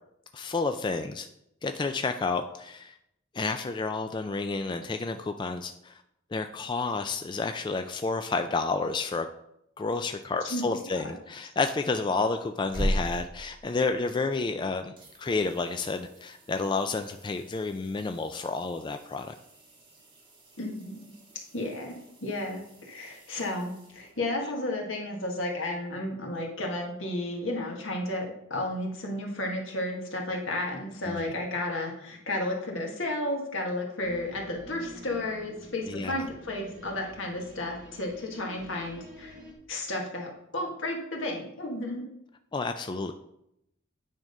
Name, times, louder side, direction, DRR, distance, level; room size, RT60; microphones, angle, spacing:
voice 1, 0.3-1.3 1.6-2.9 3.3-6.0 6.3-9.3 9.8-14.9 15.2-19.3 31.1-31.3 35.9-36.2 42.5-43.1, left 3 dB, 25° left, 7 dB, 0.3 m, -30 dB
sound 1, 12.4-14.6 15.0-24.5 27.3-27.4, equal, 25° right, 2.3 m, -40 dB
voice 2, 20.6-21.1 21.5-39.4 39.7-42.1, left 1 dB, 80° left, 0 dB, 1.8 m, -33 dB
sound 2, 34.0-39.5, right 1 dB, 40° right, 1.4 m, -48 dB
9.0 x 3.7 x 5.3 m, 0.78 s
head